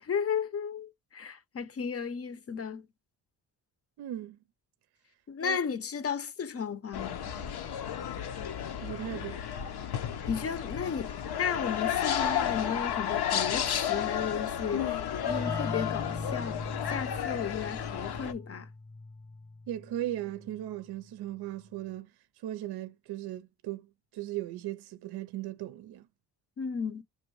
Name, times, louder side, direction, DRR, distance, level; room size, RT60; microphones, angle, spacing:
voice 1, 0.0-2.9 5.3-7.3 10.3-11.1 11.4-16.6 16.9-18.7 26.6-27.0, left 6 dB, 35° left, 0.7 m, -34 dB
voice 2, 4.0-4.4 5.4-5.6 8.8-9.4 19.7-22.1 22.4-26.1, right 13 dB, 70° right, 0.5 m, -37 dB
sound 1, 6.9-18.3, left 9 dB, 70° left, 0.8 m, -32 dB
sound 2, 15.3-20.7, left 3 dB, 10° left, 0.3 m, -40 dB
5.3 x 2.6 x 3.1 m
cardioid pair, 70°, 40 cm